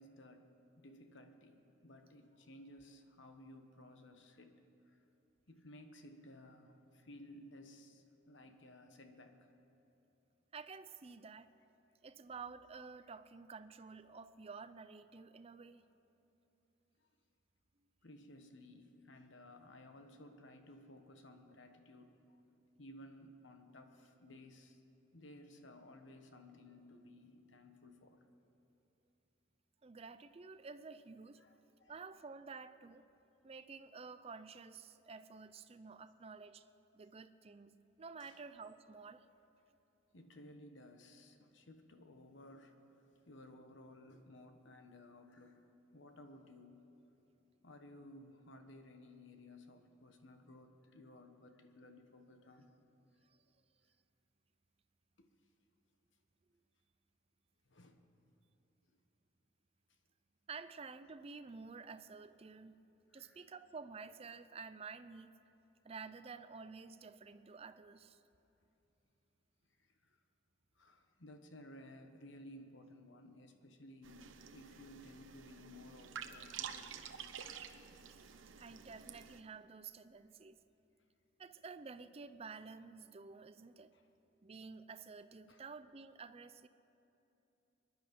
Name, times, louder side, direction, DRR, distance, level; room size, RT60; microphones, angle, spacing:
voice 1, 0.0-5.1 5.5-9.5 17.0-17.1 18.0-22.4 22.8-24.8 25.1-28.2 31.4-31.9 38.2-38.4 40.1-46.9 47.6-52.7 55.2-55.3 57.6-58.0 59.9-60.0 63.1-63.5 69.8-70.2 70.7-77.3 83.9-84.1 85.5-85.6, left 1 dB, 70° left, 6 dB, 1.2 m, -57 dB
voice 2, 10.5-11.5 12.0-15.8 29.8-31.4 31.9-33.0 33.4-36.7 36.9-39.3 53.2-53.4 60.5-62.8 63.1-65.3 65.8-68.2 78.1-80.6 81.4-83.9 84.4-86.7, right 4 dB, 30° right, 12 dB, 0.5 m, -51 dB
sound 1, 74.0-79.4, right 7 dB, 85° right, 0.8 m, -49 dB
24.0 x 10.5 x 5.3 m, 2.9 s
head